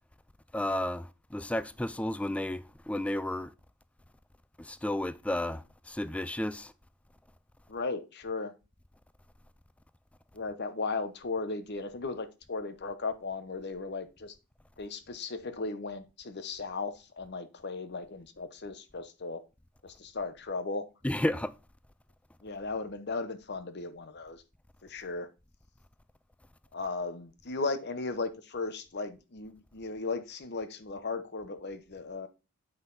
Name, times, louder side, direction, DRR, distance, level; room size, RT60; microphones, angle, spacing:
voice 1, 0.5-3.5 4.6-6.7 21.0-21.5, left 1 dB, 5° left, 0.3 m, -32 dB
voice 2, 7.7-8.5 10.3-14.3 14.8-19.4 19.8-20.8 22.4-24.4 24.8-25.3 26.7-32.3, left 3 dB, 50° left, 0.9 m, -36 dB
7.9 x 5.7 x 3.9 m
head